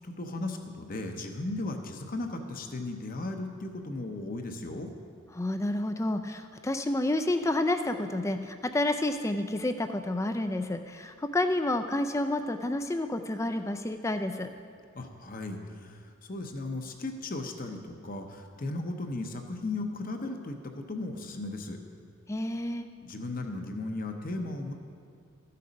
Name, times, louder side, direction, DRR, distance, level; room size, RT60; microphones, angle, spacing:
voice 1, 0.0-4.9 14.9-21.8 23.0-24.7, left 2 dB, 40° left, 4 dB, 0.8 m, -36 dB
voice 2, 5.3-14.5 22.3-22.9, left 1 dB, 15° left, 7 dB, 0.4 m, -29 dB
13.0 x 6.7 x 5.2 m, 2.4 s
head